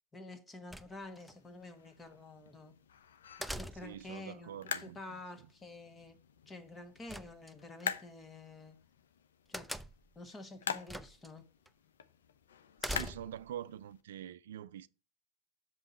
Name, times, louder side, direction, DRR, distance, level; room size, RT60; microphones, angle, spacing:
voice 1, 0.1-2.7 3.6-6.1 6.5-8.8 9.5-9.7 10.1-11.4, left 2 dB, 20° left, 1.6 m, -49 dB
sound 1, 0.7-1.3 3.4-4.1 7.1-7.8 9.5-10.2 10.9-11.3 11.7-11.8 12.8-13.5, equal, ahead, 0.5 m, -42 dB
sound 2, 0.8-14.0, left 7 dB, 75° left, 0.7 m, -46 dB
voice 2, 3.8-5.2 12.8-14.9, right 10 dB, 70° right, 0.3 m, -45 dB
6.8 x 5.3 x 4.2 m
hypercardioid pair, 85°, 0 cm